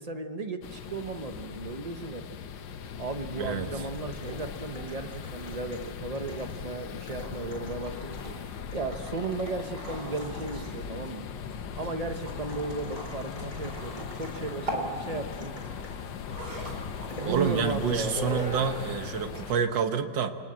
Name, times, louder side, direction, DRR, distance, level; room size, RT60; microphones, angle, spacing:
voice 1, 0.0-2.3 3.0-8.4 8.7-11.3 11.8-15.6 17.0-18.2, right 3 dB, 25° right, 7 dB, 0.9 m, -35 dB
sound 1, 0.6-19.6, left 7 dB, 80° left, 1.7 m, -39 dB
voice 2, 3.4-3.7 17.2-20.3, right 7 dB, 85° right, 7 dB, 2.0 m, -28 dB
sound 2, 3.9-11.0 12.5-14.5 15.3-16.0 16.4-16.6 17.1-17.4 18.1-19.0 19.3-19.5, left 1 dB, 20° left, 6.2 m, -43 dB
sound 3, 7.2-18.9, right 1 dB, 60° right, 4.8 m, -43 dB
26.5 x 19.5 x 7.9 m, 2.1 s
omnidirectional pair, 1.9 m